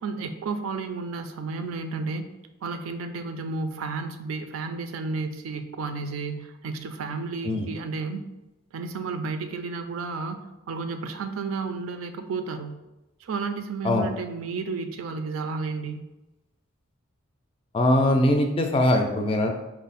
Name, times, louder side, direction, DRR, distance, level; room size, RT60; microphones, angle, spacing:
voice 1, 0.0-2.3 2.6-8.3 8.7-12.8 13.2-16.0, right 4 dB, 80° right, 7 dB, 0.4 m, -32 dB
voice 2, 17.7-19.5, left 1 dB, 25° left, 4 dB, 0.3 m, -21 dB
4.4 x 2.0 x 3.9 m, 1.0 s
head